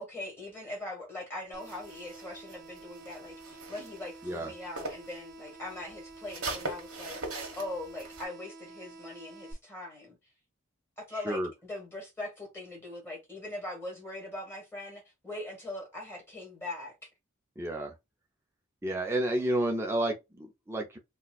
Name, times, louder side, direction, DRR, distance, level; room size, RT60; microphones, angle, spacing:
voice 1, 0.0-10.2 11.0-17.1, left 2 dB, 10° left, 1.6 m, -41 dB
sound 1, 1.5-9.5, right 2 dB, 50° right, 0.8 m, -49 dB
sound 2, 1.6-5.2 5.5-8.2, right 2 dB, 85° right, 1.4 m, -41 dB
voice 2, 17.6-17.9 18.8-21.0, right 1 dB, 10° right, 0.6 m, -30 dB
4.1 x 2.4 x 2.4 m
head